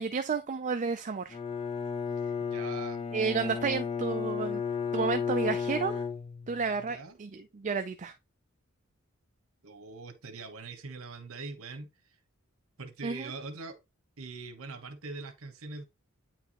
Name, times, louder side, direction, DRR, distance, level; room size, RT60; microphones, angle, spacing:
voice 1, 0.0-1.4 3.1-4.6 4.9-6.0 6.5-8.1 13.0-13.3, right 5 dB, 35° right, 0.4 m, -31 dB
Bowed string instrument, 1.3-6.7, left 6 dB, 30° left, 0.6 m, -33 dB
voice 2, 2.4-3.0 6.8-7.2 9.6-12.2 12.8-13.8 14.2-15.8, right 3 dB, 70° right, 1.2 m, -42 dB
9.0 x 4.6 x 3.0 m
head